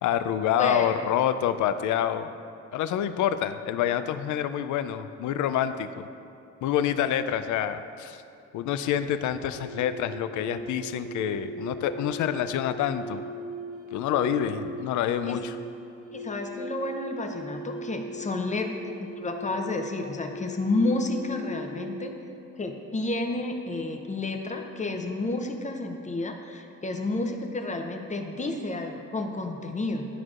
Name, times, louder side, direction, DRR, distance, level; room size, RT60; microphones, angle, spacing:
voice 1, 0.0-2.3 2.7-6.1 6.6-8.2 8.5-13.2 13.9-15.6, left 10 dB, 75° left, 11 dB, 0.4 m, -27 dB
voice 2, 0.5-0.9 15.3-15.4 16.1-22.1 22.6-30.1, left 2 dB, 25° left, 4 dB, 0.7 m, -30 dB
sound 1, 9.5-22.3, equal, 55° right, 0.8 m, -39 dB
12.5 x 4.6 x 2.5 m, 2.6 s
cardioid pair, 90°, 30 cm